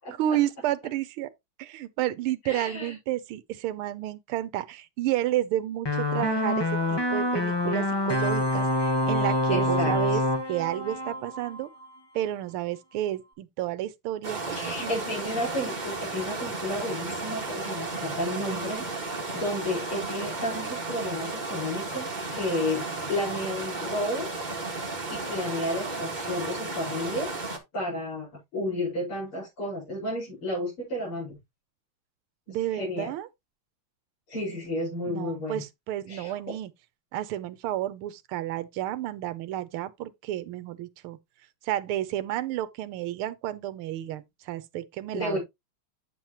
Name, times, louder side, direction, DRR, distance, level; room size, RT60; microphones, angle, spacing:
voice 1, 0.2-1.3 1.6-10.2 10.5-11.7 12.1-15.0 32.5-33.3 35.1-36.7 37.1-41.2 41.6-45.4, right 13 dB, 80° right, 1.6 m, -31 dB
voice 2, 2.4-2.9 9.5-10.2 14.5-24.3 25.1-27.3 27.7-31.4 32.5-33.1 34.3-35.6 36.1-36.6 45.1-45.4, left 1 dB, 70° left, 5.9 m, -32 dB
sound 1, 5.9-12.0, left 1 dB, 15° left, 0.9 m, -26 dB
sound 2, 14.2-27.6, right 3 dB, 25° right, 1.6 m, -34 dB
8.5 x 7.3 x 2.9 m
omnidirectional pair, 2.4 m